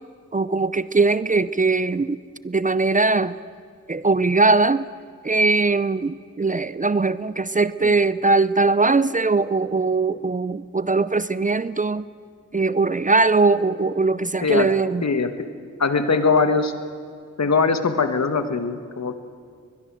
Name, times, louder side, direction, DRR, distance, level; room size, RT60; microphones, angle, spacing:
voice 1, 0.3-2.2 2.4-3.4 3.9-4.8 5.2-12.1 12.5-15.0, right 3 dB, 25° right, 15 dB, 0.6 m, -20 dB
voice 2, 15.0-15.5 15.8-16.7 17.4-19.2, left 4 dB, 60° left, 8 dB, 1.8 m, -21 dB
22.0 x 21.5 x 7.6 m, 2.1 s
cardioid pair, 50°, 30 cm